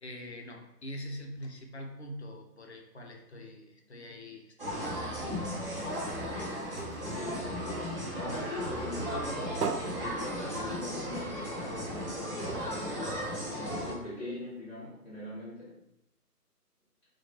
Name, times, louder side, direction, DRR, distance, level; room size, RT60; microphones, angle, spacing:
voice 1, 0.0-5.0, equal, 45° left, 2 dB, 0.4 m, -44 dB
sound 1, 4.6-13.9, equal, 35° right, 1.0 m, -36 dB
sound 2, 5.9-8.5 8.9-11.1 11.5-11.6 11.9-12.0 12.4-14.0 14.6-14.7, right 5 dB, 75° right, 0.6 m, -40 dB
voice 2, 6.2-7.5 8.1-13.1 13.6-15.8, left 1 dB, 5° left, -9 dB, 0.9 m, -41 dB
4.1 x 2.2 x 2.9 m, 0.82 s
figure-of-eight pair, 140°, 48 cm